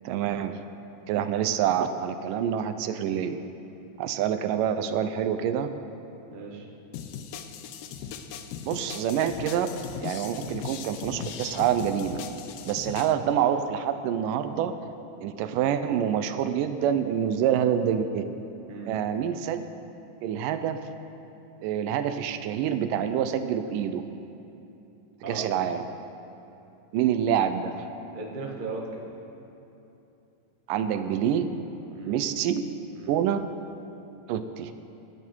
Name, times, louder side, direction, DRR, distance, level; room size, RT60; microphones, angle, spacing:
voice 1, 0.0-0.6 1.1-3.4 4.0-5.7 8.6-9.7 10.0-12.2 12.6-14.7 15.2-18.2 18.9-19.7 20.2-20.8 21.6-24.0 25.3-25.9 26.9-27.8 30.7-31.5 32.0-32.7 33.1-33.4 34.3-34.7, right 9 dB, 80° right, 10 dB, 2.2 m, -26 dB
voice 2, 6.3-6.6 18.7-18.9 25.2-25.5 28.1-29.0 31.9-32.2 32.9-33.1, right 3 dB, 40° right, -2 dB, 0.7 m, -37 dB
sound 1, 6.9-13.1, left 7 dB, 80° left, 2.2 m, -38 dB
22.0 x 10.5 x 4.6 m, 2.8 s
omnidirectional pair, 3.9 m